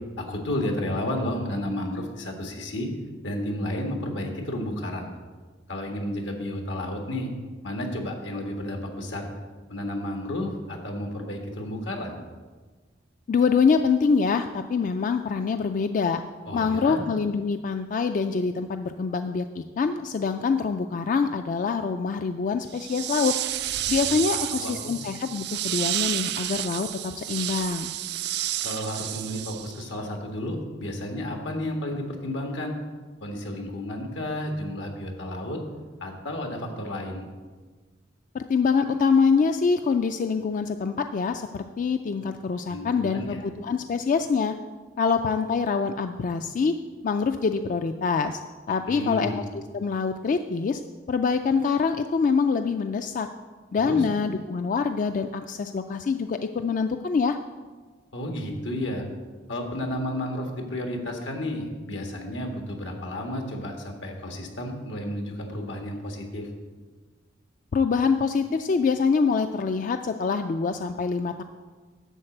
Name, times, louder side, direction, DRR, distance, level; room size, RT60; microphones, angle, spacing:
voice 1, 0.2-2.9 3.2-5.1 5.7-7.3 7.6-9.3 9.7-12.2 16.5-17.0 24.1-24.9 28.6-32.7 33.2-35.6 36.0-37.3 42.7-43.4 48.9-49.4 53.8-54.0 58.1-59.0 59.5-66.5, left 1 dB, 85° left, 2 dB, 1.5 m, -32 dB
voice 2, 13.3-16.2 16.5-23.3 23.9-27.9 38.3-44.5 45.0-46.7 47.0-48.4 48.7-50.8 51.1-53.3 53.7-57.4 67.7-71.4, left 5 dB, 45° left, 8 dB, 0.3 m, -25 dB
sound 1, 22.7-30.0, right 13 dB, 65° right, 0.4 m, -30 dB
11.0 x 4.0 x 7.7 m, 1.4 s
head